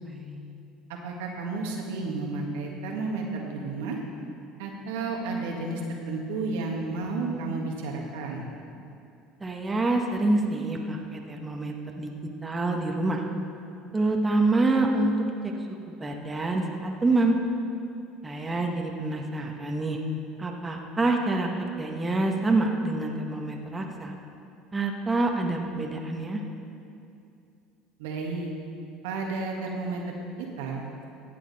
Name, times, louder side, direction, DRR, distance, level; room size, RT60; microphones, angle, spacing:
voice 1, 0.0-0.6 9.4-12.1 12.4-13.2 13.9-15.5 15.9-17.3 18.2-20.0 20.4-24.1 24.7-26.4, right 2 dB, 20° right, 1 dB, 1.3 m, -27 dB
voice 2, 0.9-4.0 4.6-5.8 6.1-8.4 28.0-28.5 29.0-31.0, right 3 dB, 80° right, 0 dB, 1.7 m, -32 dB
15.0 x 8.5 x 4.2 m, 2.6 s
supercardioid pair, 85°, 0 cm